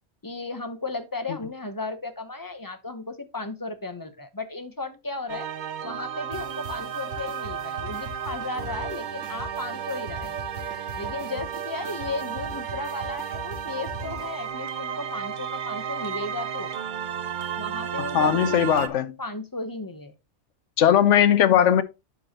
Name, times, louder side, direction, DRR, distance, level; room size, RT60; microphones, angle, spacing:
voice 1, 0.2-5.5 5.8-10.4 11.0-16.7 17.6-18.7 19.2-20.1 20.9-21.4, left 3 dB, 20° left, 0.8 m, -35 dB
sound 1, 5.3-18.9, right 8 dB, 50° right, 0.6 m, -33 dB
sound 2, 6.3-14.5, equal, 90° right, 2.3 m, -42 dB
voice 2, 18.1-19.1 20.8-21.8, left 9 dB, 80° left, 1.0 m, -19 dB
11.0 x 4.7 x 2.9 m
omnidirectional pair, 1.2 m